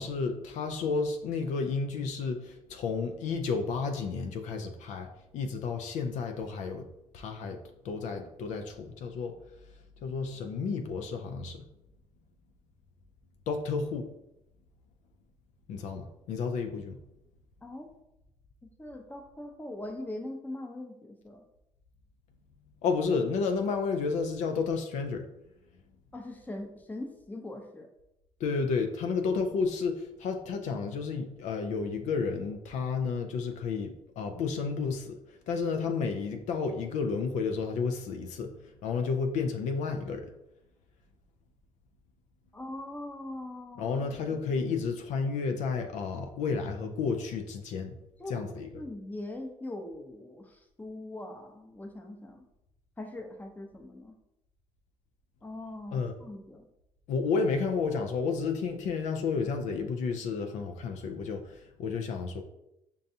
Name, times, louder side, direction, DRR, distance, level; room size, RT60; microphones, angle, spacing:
voice 1, 0.0-5.1 5.3-6.9 7.1-9.4 10.0-11.6 13.5-14.1 15.7-17.0 22.8-25.3 28.4-35.2 35.5-38.5 38.8-40.3 43.8-47.9 48.3-48.7 55.9-56.1 57.1-62.4, left 5 dB, 75° left, 5 dB, 0.4 m, -31 dB
voice 2, 18.6-21.4 26.1-27.9 42.5-44.0 44.3-44.4 48.2-48.4 48.7-50.4 50.8-52.5 53.0-54.1 55.4-56.7, left 1 dB, 15° left, 4 dB, 0.6 m, -41 dB
5.2 x 2.3 x 2.7 m, 0.86 s
cardioid pair, 80°, 13 cm